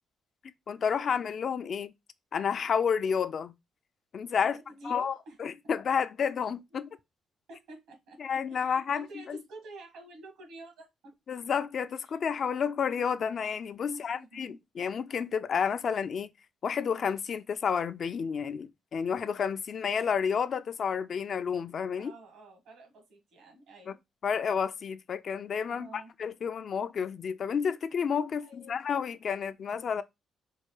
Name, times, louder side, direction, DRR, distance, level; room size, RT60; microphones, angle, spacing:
voice 1, 0.7-1.9 2.3-3.5 4.1-4.6 4.9-5.1 5.4-6.9 8.2-9.4 11.3-16.3 16.6-22.1 23.9-24.0 24.2-30.0, left 7 dB, 55° left, 0.3 m, -30 dB
voice 2, 4.4-5.4 5.6-5.7 7.5-8.2 8.5-10.9 12.0-12.2 13.9-14.6 22.0-24.0 25.7-26.1 28.4-28.8, right 2 dB, 85° right, 1.4 m, -49 dB
4.4 x 2.3 x 3.0 m
cardioid pair, 90°, 0 cm